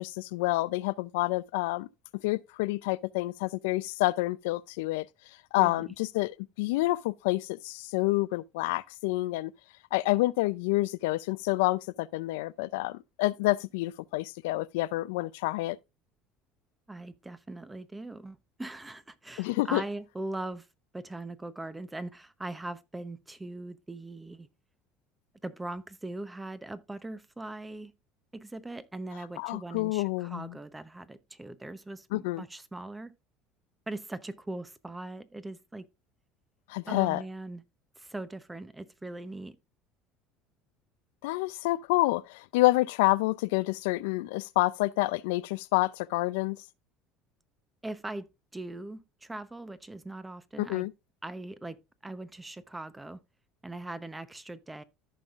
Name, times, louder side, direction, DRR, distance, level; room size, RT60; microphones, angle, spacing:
voice 1, 0.0-1.9 2.2-5.1 5.5-9.5 9.9-15.8 19.4-19.8 29.4-30.6 32.1-32.4 36.7-37.2 41.2-46.6 50.6-50.9, left 20 dB, 90° left, 0.4 m, -28 dB
voice 2, 5.6-5.9 16.9-20.7 20.9-24.5 25.4-27.9 28.3-33.1 33.9-35.9 36.9-37.6 38.0-39.6 47.8-50.9 51.2-53.2 53.6-54.8, right 2 dB, 10° right, 0.8 m, -40 dB
14.0 x 5.5 x 2.4 m
supercardioid pair, 115°, 0 cm